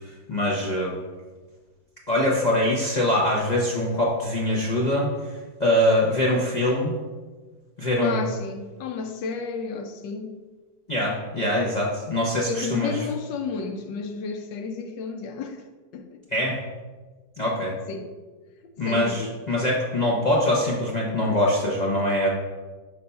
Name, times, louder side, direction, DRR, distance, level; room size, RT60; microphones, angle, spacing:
voice 1, 0.3-1.0 2.1-5.1 5.6-7.0 7.8-8.2 10.9-12.9 16.3-16.6 17.4-17.7 18.8-22.3, left 1 dB, 55° left, 0.4 m, -23 dB
voice 2, 8.0-10.3 12.5-15.6 15.9-16.2 17.9-18.1 18.6-19.4, left 5 dB, 80° left, 1.3 m, -32 dB
5.6 x 3.4 x 5.2 m
omnidirectional pair, 1.9 m